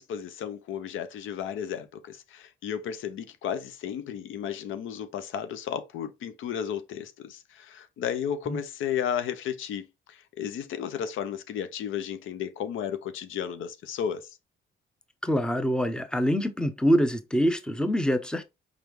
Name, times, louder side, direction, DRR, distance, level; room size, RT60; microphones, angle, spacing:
voice 1, 0.0-14.4, left 8 dB, 80° left, 0.7 m, -33 dB
voice 2, 15.2-18.4, equal, 5° left, 0.7 m, -25 dB
5.1 x 3.4 x 3.0 m
cardioid pair, 90°, 20 cm